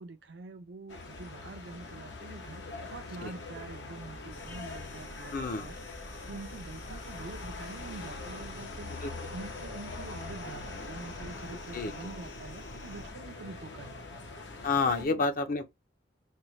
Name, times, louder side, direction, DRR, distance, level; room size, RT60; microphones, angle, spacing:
voice 1, 0.0-5.8 6.2-9.0 9.3-14.2 14.9-15.2, right 3 dB, 75° right, 0.4 m, -46 dB
sound 1, 0.9-15.0, left 3 dB, 85° left, 0.8 m, -43 dB
sound 2, 4.3-13.1, left 1 dB, 70° left, 2.1 m, -49 dB
voice 2, 5.3-5.7 8.9-9.3 11.7-11.9 14.6-15.7, left 4 dB, 50° left, 0.5 m, -30 dB
4.2 x 2.1 x 3.0 m
head